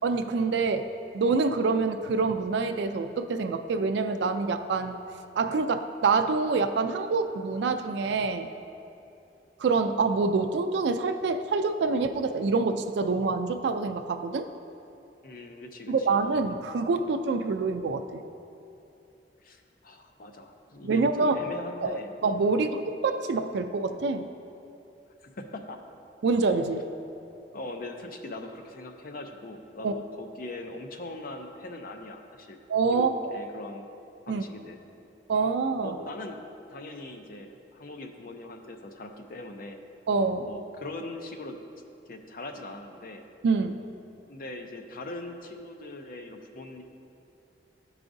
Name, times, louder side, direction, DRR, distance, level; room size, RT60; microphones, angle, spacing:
voice 1, 0.0-0.9 1.1-5.0 5.4-8.5 9.6-14.5 15.9-18.2 20.8-21.4 21.8-24.3 26.2-26.8 29.8-29.9 32.7-33.1 34.3-34.4 35.3-36.0 40.1-40.5 43.4-43.8, right 4 dB, 70° right, 7 dB, 0.4 m, -26 dB
voice 2, 15.2-16.2 19.4-22.2 22.5-22.8 25.2-25.8 27.5-32.6 32.8-33.8 34.3-34.8 35.8-36.4 36.7-39.8 40.4-41.6 42.1-43.2 44.3-46.8, left 2 dB, 55° left, 5 dB, 0.5 m, -41 dB
12.0 x 4.8 x 2.6 m, 2.8 s
head